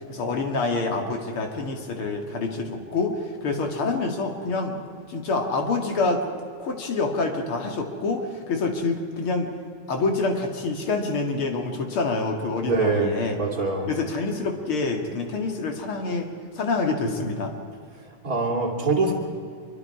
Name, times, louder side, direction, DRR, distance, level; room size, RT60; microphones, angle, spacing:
voice 1, 0.0-4.8 5.1-6.3 6.6-9.5 9.9-13.4 13.9-16.3 16.6-17.5, left 3 dB, 75° left, 3 dB, 3.0 m, -27 dB
voice 2, 12.6-13.9 18.2-19.1, right 3 dB, 40° right, 0 dB, 3.4 m, -24 dB
26.0 x 23.5 x 4.9 m, 2.3 s
omnidirectional pair, 2.4 m